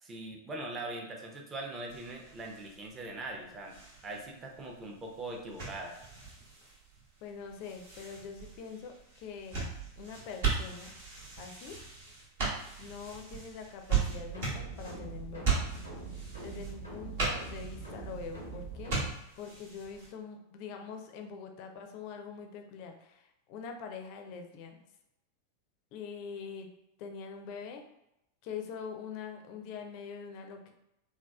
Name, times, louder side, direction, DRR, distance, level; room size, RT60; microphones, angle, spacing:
voice 1, 0.0-6.0, right 2 dB, 20° right, 1 dB, 0.6 m, -41 dB
sound 1, 1.9-20.1, right 5 dB, 55° right, 0.9 m, -38 dB
voice 2, 7.2-9.7 10.0-11.0 11.4-11.7 12.8-15.5 16.4-24.9 25.9-26.7 27.0-27.8 28.4-30.7, left 6 dB, 45° left, 5 dB, 0.4 m, -44 dB
sound 2, 14.0-19.1, right 4 dB, 85° right, 1.1 m, -43 dB
3.4 x 2.2 x 2.3 m, 0.85 s
figure-of-eight pair, 90°, 0 cm